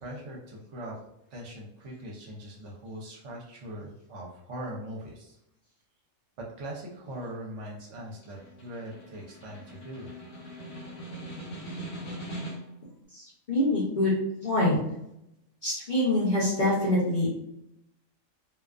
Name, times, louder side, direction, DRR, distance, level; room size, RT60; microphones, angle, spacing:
voice 1, 0.0-1.0 1.3-5.4 6.4-10.1, right 1 dB, 70° right, -2 dB, 0.9 m, -41 dB
Snare drum, 7.9-12.9, right 1 dB, 65° left, 1.2 m, -41 dB
voice 2, 13.2-14.1 14.4-14.8 15.6-17.3, left 1 dB, 45° left, -7 dB, 0.7 m, -25 dB
2.4 x 2.3 x 2.3 m, 0.81 s
omnidirectional pair, 1.4 m